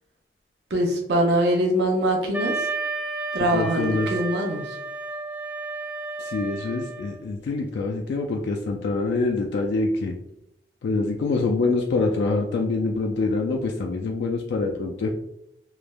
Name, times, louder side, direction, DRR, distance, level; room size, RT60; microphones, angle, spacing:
voice 1, 0.7-2.7 3.3-4.8, right 1 dB, 75° right, 0 dB, 0.5 m, -23 dB
Wind instrument woodwind instrument, 2.3-7.2, right 3 dB, 10° right, 0.3 m, -32 dB
voice 2, 3.5-4.1 6.2-10.2 10.8-15.1, left 3 dB, 80° left, 1 dB, 0.3 m, -25 dB
3.2 x 2.0 x 2.2 m, 0.79 s
head